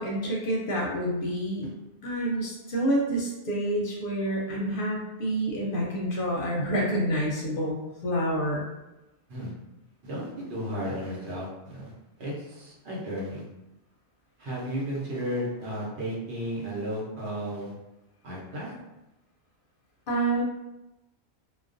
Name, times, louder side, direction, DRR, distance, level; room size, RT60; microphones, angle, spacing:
voice 1, 0.0-1.7 2.0-7.8 8.0-8.6 20.1-20.4, right 1 dB, 60° left, -3 dB, 0.7 m, -28 dB
voice 2, 10.0-11.9 12.2-13.4 14.4-17.7 18.2-18.7, equal, 75° right, -5 dB, 1.0 m, -33 dB
2.3 x 2.1 x 2.4 m, 0.96 s
omnidirectional pair, 1.1 m